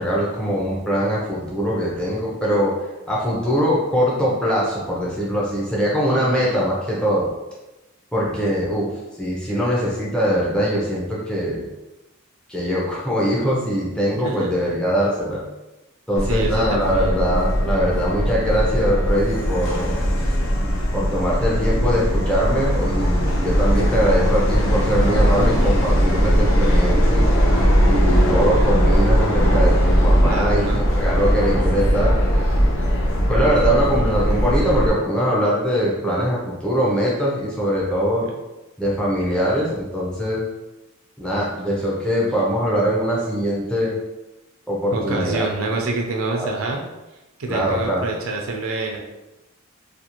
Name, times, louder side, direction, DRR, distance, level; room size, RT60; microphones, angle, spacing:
voice 1, 0.0-7.3 8.1-8.9 9.2-11.7 12.5-15.4 16.1-20.0 20.9-27.3 27.8-30.7 31.0-32.5 33.3-38.3 38.8-40.4 41.2-44.0 44.7-45.5 46.4-46.5 47.5-48.1, equal, 5° left, -6 dB, 0.5 m, -22 dB
voice 2, 6.1-6.7 9.4-9.5 14.1-14.5 16.2-17.3 25.5-25.8 30.2-30.8 32.6-32.8 33.9-34.3 38.2-38.3 44.9-46.8 47.4-49.0, right 3 dB, 70° right, 1 dB, 0.5 m, -28 dB
Subway metro underground, 16.2-34.9, equal, 60° left, 0.6 m, -19 dB
2.5 x 2.4 x 2.9 m, 1.0 s
head